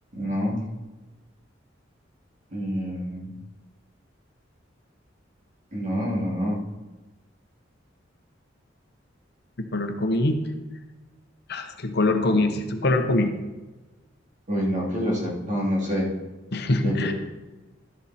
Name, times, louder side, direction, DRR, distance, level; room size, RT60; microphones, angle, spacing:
voice 1, 0.1-0.6 2.5-3.3 5.7-6.6 12.3-12.5 14.5-16.1 16.8-17.1, equal, 40° right, -4 dB, 2.7 m, -27 dB
voice 2, 9.6-10.4 11.5-13.3 16.5-17.1, left 2 dB, 60° left, 6 dB, 1.0 m, -23 dB
12.5 x 7.3 x 4.3 m, 1.2 s
head